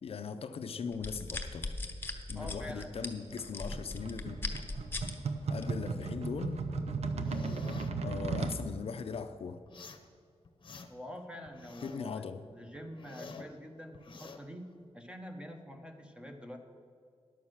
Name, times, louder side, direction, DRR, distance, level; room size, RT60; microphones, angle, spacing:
voice 1, 0.0-1.7 2.3-4.4 5.5-6.6 8.0-9.6 11.8-12.5, left 5 dB, 65° left, 9 dB, 0.5 m, -39 dB
sound 1, 0.9-5.1 5.6-5.9, left 3 dB, 20° left, 1.0 m, -38 dB
voice 2, 2.3-2.9 10.9-14.7 14.9-16.6, equal, 10° right, 4 dB, 1.1 m, -46 dB
sound 2, 3.0-8.6, right 4 dB, 80° right, 0.8 m, -36 dB
sound 3, 7.3-7.9 9.7-10.1 10.4-11.1 11.5-12.1 12.5-13.5 13.9-14.4, left 4 dB, 50° left, 0.9 m, -48 dB
11.0 x 7.3 x 6.3 m, 2.3 s
wide cardioid pair, 140°, 11 cm